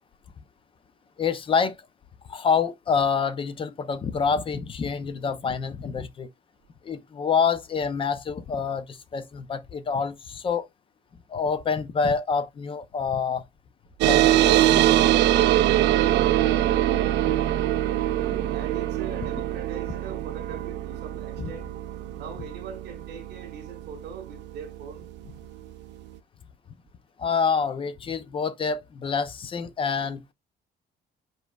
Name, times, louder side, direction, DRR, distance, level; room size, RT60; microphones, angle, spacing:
voice 1, 1.2-1.8 2.3-6.3 6.8-10.7 11.3-13.4 14.1-14.8 21.4-21.5 27.2-30.2, left 6 dB, 30° left, 0.5 m, -27 dB
sound 1, 14.0-24.9, right 13 dB, 85° right, 0.4 m, -23 dB
voice 2, 18.2-21.7 22.2-25.0, right 7 dB, 70° right, 1.9 m, -41 dB
5.1 x 4.6 x 2.3 m
cardioid pair, 165°, 18 cm